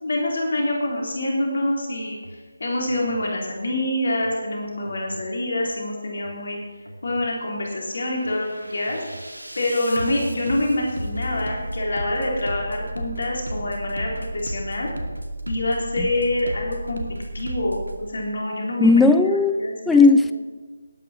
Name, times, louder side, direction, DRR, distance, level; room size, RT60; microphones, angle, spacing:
voice 1, 0.0-6.6 7.0-9.0 9.6-14.9 15.5-20.0, left 1 dB, 50° left, -1 dB, 3.7 m, -26 dB
Bass drum, 2.1-2.4 2.9-3.3 4.1-4.4 4.9-5.3 6.1-6.4 6.9-7.4 7.8-18.0, right 1 dB, 80° right, 2.3 m, -34 dB
voice 2, 18.8-19.5 19.9-20.3, left 3 dB, 5° left, 10 dB, 0.4 m, -15 dB
19.5 x 9.2 x 4.4 m, 1.4 s
figure-of-eight pair, 155°, 0 cm